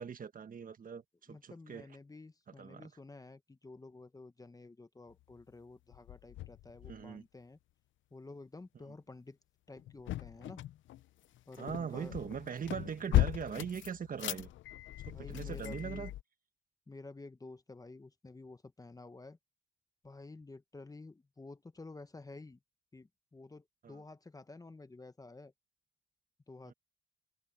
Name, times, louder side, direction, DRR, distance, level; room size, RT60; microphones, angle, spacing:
voice 1, 0.0-1.9 2.5-2.9 6.8-7.2 11.6-14.5 15.0-16.1 23.8-24.0 26.6-26.7, right 7 dB, 45° right, 1.5 m, -41 dB
voice 2, 1.3-7.6 8.1-9.4 9.7-10.6 11.5-12.2 15.1-16.1 16.9-19.4 20.0-22.6 22.9-25.5 26.5-26.7, left 3 dB, 20° left, 1.1 m, -51 dB
sound 1, 5.1-5.4 5.9-7.1 9.8-16.2, left 15 dB, 75° left, 0.7 m, -37 dB
cardioid pair, 90°, 20 cm